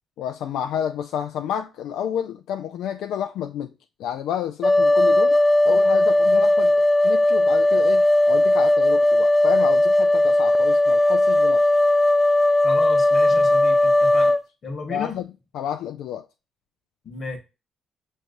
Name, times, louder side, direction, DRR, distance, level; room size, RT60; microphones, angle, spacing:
voice 1, 0.2-3.7 4.0-5.4 5.6-11.7 14.9-15.3 15.5-16.3, left 9 dB, 85° left, 0.3 m, -30 dB
sound 1, 4.6-14.4, left 1 dB, 5° left, 0.4 m, -17 dB
voice 2, 12.6-14.3 14.6-15.2 17.0-17.4, left 3 dB, 50° left, 1.5 m, -33 dB
5.8 x 3.2 x 2.6 m
cardioid pair, 90°, 0 cm